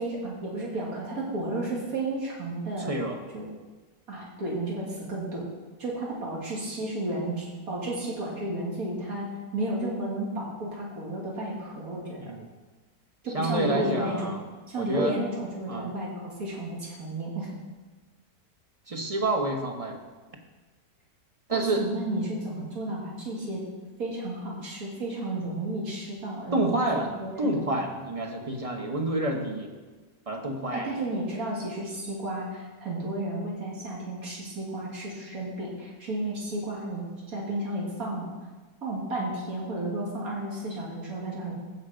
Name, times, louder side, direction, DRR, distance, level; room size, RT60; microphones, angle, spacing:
voice 1, 0.0-2.9 3.3-3.5 4.1-5.5 5.8-9.3 9.5-12.2 13.2-14.2 14.7-17.5 21.5-23.6 24.0-26.7 26.9-27.7 30.7-38.3 38.8-41.5, right 1 dB, 65° right, -4 dB, 2.9 m, -32 dB
voice 2, 13.3-14.4 14.8-15.2 15.7-15.9 18.9-20.0 21.5-21.8 26.5-27.1 27.4-29.7 30.3-31.0, right 1 dB, 25° right, 2 dB, 1.0 m, -28 dB
15.5 x 5.3 x 5.1 m, 1.3 s
omnidirectional pair, 1.7 m